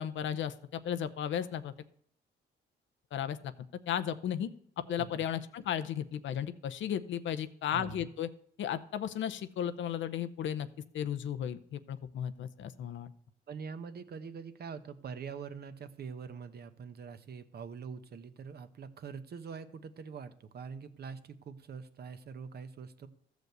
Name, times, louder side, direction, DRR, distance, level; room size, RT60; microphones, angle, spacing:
voice 1, 0.0-1.7 3.1-3.4 3.9-4.5 4.9-8.3 8.6-10.7 10.9-13.1, left 9 dB, 70° left, 11 dB, 0.8 m, -35 dB
voice 2, 7.7-8.1 13.5-23.1, right 6 dB, 55° right, 10 dB, 1.0 m, -44 dB
13.5 x 5.1 x 8.0 m, 0.65 s
cardioid pair, 90°, 20 cm